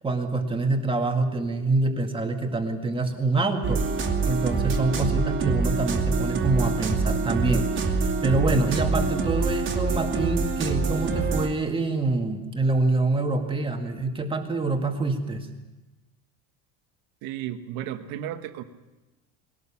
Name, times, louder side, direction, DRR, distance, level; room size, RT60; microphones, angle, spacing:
voice 1, 0.0-15.5, right 3 dB, 15° right, 4 dB, 2.0 m, -26 dB
sound 1, 3.6-11.5, right 4 dB, 30° right, 2.4 m, -25 dB
voice 2, 17.2-18.6, right 11 dB, 65° right, 9 dB, 1.5 m, -33 dB
20.5 x 18.0 x 7.2 m, 1.1 s
cardioid pair, 145°, 38 cm